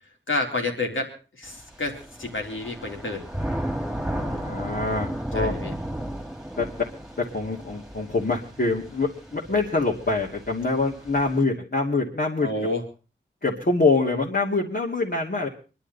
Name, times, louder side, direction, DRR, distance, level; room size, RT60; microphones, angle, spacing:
voice 1, 0.3-1.1 1.4-3.2 5.3-5.7 12.4-12.8, left 2 dB, 75° left, 1 dB, 3.9 m, -29 dB
Thunder / Rain, 1.5-11.4, right 1 dB, 5° right, 2.4 m, -34 dB
voice 2, 4.1-5.5 6.6-6.9 7.2-12.5 13.4-15.5, left 3 dB, 50° left, -3 dB, 2.8 m, -25 dB
24.5 x 11.5 x 4.2 m, 0.35 s
wide cardioid pair, 50°, 20 cm